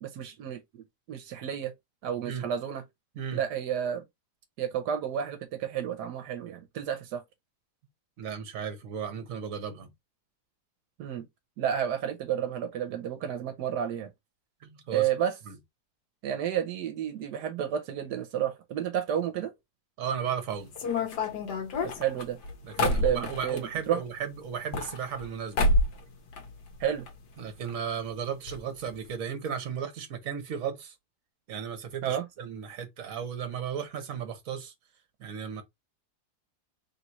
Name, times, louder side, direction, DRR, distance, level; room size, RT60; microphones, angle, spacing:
voice 1, 0.0-1.7 2.0-2.8 3.3-4.0 4.6-7.2 11.0-11.3 11.6-14.1 14.9-15.3 16.2-19.5 21.8-22.4 22.8-24.0 26.8-27.1 32.0-32.2, right 9 dB, 80° right, 1.3 m, -31 dB
voice 2, 8.2-9.9 14.6-15.1 15.5-15.6 20.0-20.7 22.6-25.7 27.4-30.9 31.5-34.7 35.2-35.6, right 7 dB, 60° right, 1.4 m, -35 dB
sound 1, 20.7-23.7 24.5-25.3 25.6-26.0 26.3-27.1 27.4-27.5 27.7-27.8 28.5-28.6 28.9-29.1, left 2 dB, 85° left, 1.6 m, -28 dB
3.6 x 3.0 x 4.0 m
omnidirectional pair, 1.7 m